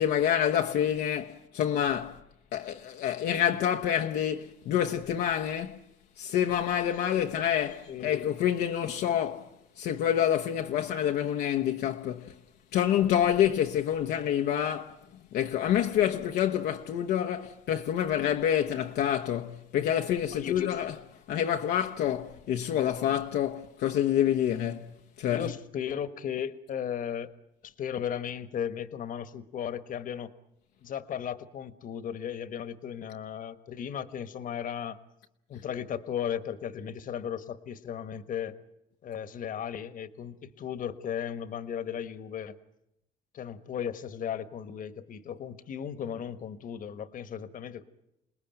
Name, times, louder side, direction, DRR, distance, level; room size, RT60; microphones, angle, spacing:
voice 1, 0.0-2.2 2.5-5.8 6.2-9.5 9.8-12.3 12.7-14.9 15.3-21.0 21.3-24.9 25.2-25.5, left 10 dB, 75° left, 1.0 m, -27 dB
voice 2, 25.3-27.3 27.6-30.3 30.8-35.0 35.5-38.6 39.0-42.6 43.3-47.8, left 8 dB, 55° left, 1.4 m, -36 dB
28.5 x 19.5 x 9.1 m
cardioid pair, 110°, 17 cm